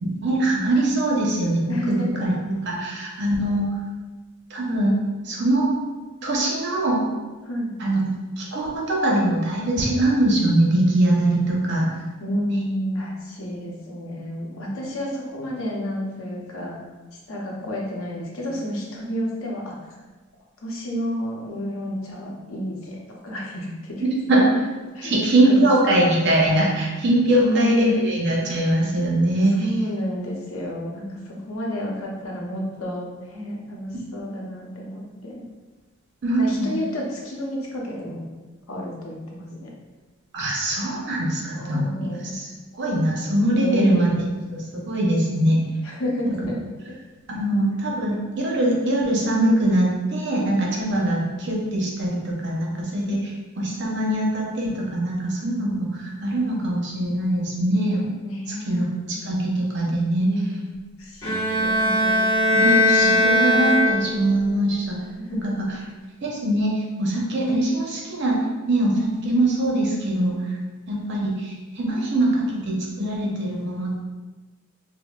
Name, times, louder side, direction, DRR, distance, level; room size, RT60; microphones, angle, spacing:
voice 1, 0.0-3.6 4.5-5.0 5.2-5.7 6.2-7.1 7.8-8.1 8.4-11.9 12.5-12.6 24.0-24.4 25.0-29.7 36.2-36.7 40.3-41.9 42.3-42.5 42.8-44.1 44.5-45.6 46.2-46.3 47.3-58.0 58.7-58.8 59.2-60.3 61.8-62.0 62.5-64.9 65.4-65.5 66.2-68.4 68.7-70.5 70.9-74.0, right 1 dB, 55° right, -2 dB, 0.7 m, -22 dB
voice 2, 1.7-2.2 7.4-7.7 12.2-16.8 17.3-19.7 20.6-24.0 24.4-24.5 24.9-25.1 25.4-25.6 26.8-26.9 27.4-27.9 29.6-35.4 36.4-38.2 38.7-39.7 41.3-42.3 43.6-44.1 45.8-46.6 58.2-59.0 59.5-59.9 60.2-62.3 62.9-63.2 65.2-65.9, equal, 80° left, -2 dB, 0.7 m, -30 dB
Bowed string instrument, 61.2-64.4, equal, 25° left, 1.1 m, -19 dB
4.9 x 2.0 x 2.4 m, 1.2 s
head